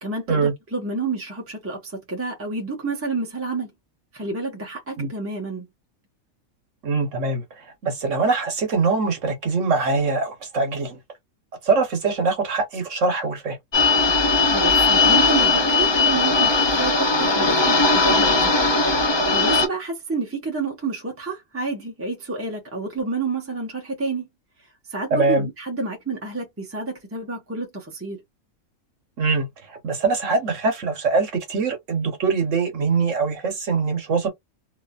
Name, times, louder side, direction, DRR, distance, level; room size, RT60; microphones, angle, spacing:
voice 1, 0.0-3.7 4.1-5.7 14.5-18.6 19.3-24.3 24.9-28.2, right 3 dB, 10° right, 0.9 m, -29 dB
voice 2, 6.8-7.4 7.8-10.9 11.6-13.6 25.1-25.5 29.2-34.3, right 4 dB, 60° right, 1.3 m, -23 dB
sound 1, 13.7-19.7, left 3 dB, 35° left, 0.4 m, -18 dB
2.9 x 2.6 x 2.3 m
omnidirectional pair, 1.5 m